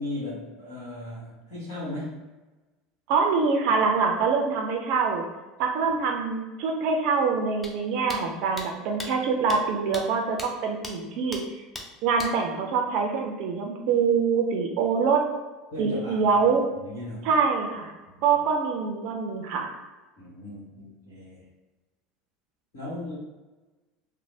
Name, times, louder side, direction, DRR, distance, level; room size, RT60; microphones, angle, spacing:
voice 1, 0.0-2.2 15.7-16.4 16.7-17.3 18.1-18.4 20.2-21.4 22.7-23.1, left 1 dB, 65° left, -10 dB, 1.2 m, -37 dB
voice 2, 3.1-5.2 5.6-11.4 12.0-15.2 15.8-16.7 17.2-17.9 18.2-19.7, right 5 dB, 60° right, 2 dB, 0.4 m, -24 dB
sound 1, 7.6-7.7 8.1-8.2 8.6-8.7 9.0-9.1 9.5-9.6 9.9-10.0 10.4-10.5 10.8-10.9 11.3-11.4 11.7-11.9 12.2-12.3, left 2 dB, 15° left, 0.5 m, -36 dB
3.1 x 2.1 x 2.6 m, 1.2 s
hypercardioid pair, 75°, 0 cm